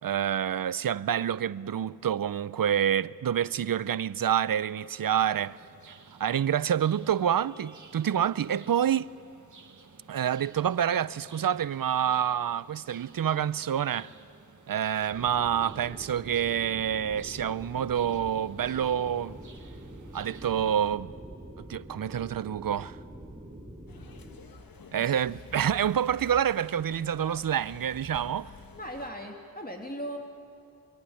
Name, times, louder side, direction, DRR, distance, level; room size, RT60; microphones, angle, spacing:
voice 1, 0.0-5.6 6.2-9.1 10.1-14.1 14.7-19.4 20.1-21.1 21.6-23.0 24.9-28.5, right 9 dB, 75° right, 0.6 m, -27 dB
sound 1, 5.2-20.9, right 4 dB, 60° right, 1.7 m, -55 dB
sound 2, 15.1-24.3, right 1 dB, 20° right, 7.6 m, -45 dB
sound 3, 23.9-29.1, left 3 dB, 80° left, 1.6 m, -49 dB
voice 2, 25.0-25.4 28.8-30.2, equal, 25° left, 3.0 m, -39 dB
26.0 x 22.5 x 9.9 m
cardioid pair, 40°, 34 cm